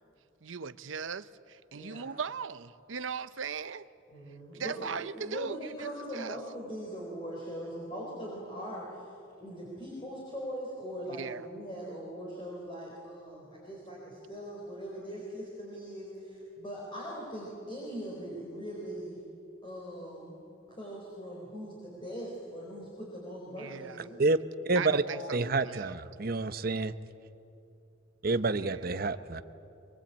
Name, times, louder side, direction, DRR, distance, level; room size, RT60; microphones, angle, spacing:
voice 1, 0.4-3.9 4.5-6.4 11.1-11.5 23.6-24.1 24.8-26.0 28.5-29.1, right 6 dB, 80° right, 14 dB, 0.7 m, -39 dB
voice 2, 1.7-2.1 4.1-9.1 9.4-19.2 19.6-20.3 20.7-24.2 25.0-25.2, equal, 25° left, -4 dB, 4.6 m, -41 dB
voice 3, 24.6-25.0 25.3-26.9 28.2-29.4, right 3 dB, 50° right, 12 dB, 0.8 m, -28 dB
23.0 x 23.0 x 8.7 m, 2.7 s
head